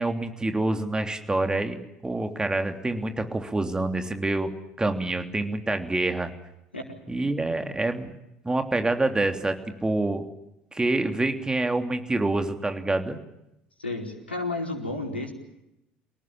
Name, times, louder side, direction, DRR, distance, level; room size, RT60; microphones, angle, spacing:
voice 1, 0.0-4.5 4.8-6.3 7.1-8.1 8.4-10.2 10.7-13.2, right 2 dB, 15° right, 7 dB, 3.2 m, -26 dB
voice 2, 13.8-15.3, left 2 dB, 85° left, 3 dB, 4.7 m, -31 dB
28.0 x 18.5 x 8.9 m, 0.86 s
figure-of-eight pair, 60°, 6 cm